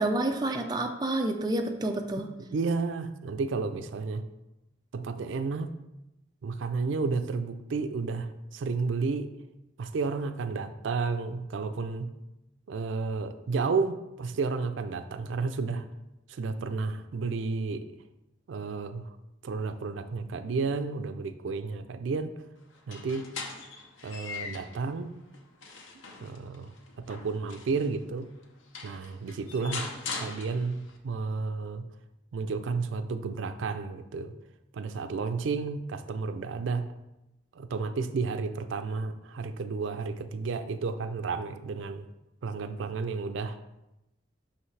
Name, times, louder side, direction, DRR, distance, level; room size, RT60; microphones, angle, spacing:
voice 1, 0.0-2.3, right 2 dB, 20° right, 4 dB, 0.4 m, -29 dB
voice 2, 2.5-4.2 4.9-5.7 6.4-9.3 9.8-12.1 12.7-15.8 16.3-17.8 18.5-19.1 19.4-22.3 22.9-23.3 24.0-25.2 26.2-28.3 28.8-29.9 30.2-31.8 32.3-34.3 34.7-36.9 37.5-42.1 42.4-43.6, right 4 dB, 80° right, 10 dB, 0.4 m, -32 dB
sound 1, 22.8-24.8 25.3-27.9 28.4-28.5 28.7-31.0, left 4 dB, 90° left, 0.8 m, -41 dB
5.7 x 5.6 x 3.2 m, 0.94 s
head